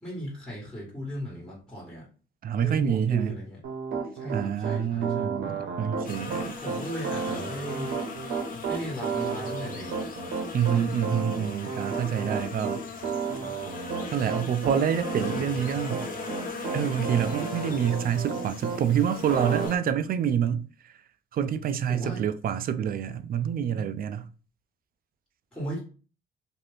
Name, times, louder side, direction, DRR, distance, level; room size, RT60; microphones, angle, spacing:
voice 1, 0.0-2.0 2.6-3.6 4.1-5.3 6.6-7.9 8.7-9.9 21.9-22.2 23.7-23.9 25.5-25.8, equal, 5° left, 1.7 m, -36 dB
voice 2, 2.4-3.4 4.3-6.5 10.5-12.8 14.1-16.1 16.7-20.7 21.3-24.3, right 8 dB, 50° right, 0.4 m, -27 dB
Piano, 3.6-18.8 19.3-19.7, right 5 dB, 85° right, 0.8 m, -32 dB
sound 1, 6.0-19.8, left 4 dB, 45° left, 0.8 m, -38 dB
2.7 x 2.5 x 3.2 m
cardioid pair, 90°, 20 cm